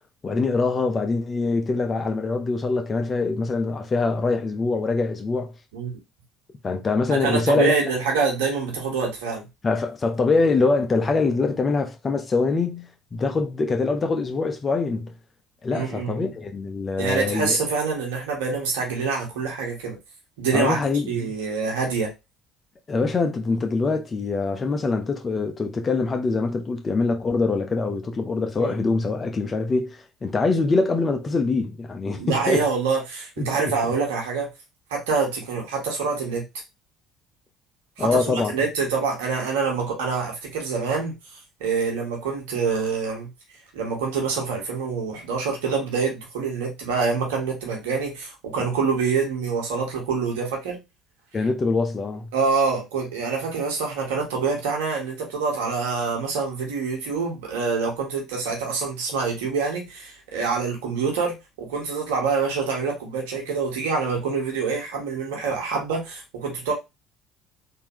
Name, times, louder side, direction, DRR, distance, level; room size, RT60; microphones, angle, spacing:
voice 1, 0.2-5.5 6.6-7.7 9.6-15.1 15.6-17.6 20.5-21.3 22.9-32.6 38.0-38.5 51.3-52.3, left 3 dB, 35° left, 1.0 m, -24 dB
voice 2, 7.2-9.5 15.7-16.3 17.0-20.0 20.4-20.8 21.1-22.1 28.6-28.8 32.1-34.5 34.9-36.4 38.0-43.3 43.7-50.8 52.3-66.7, right 5 dB, 75° right, 1.5 m, -26 dB
3.6 x 3.0 x 3.1 m
hypercardioid pair, 60°, 0 cm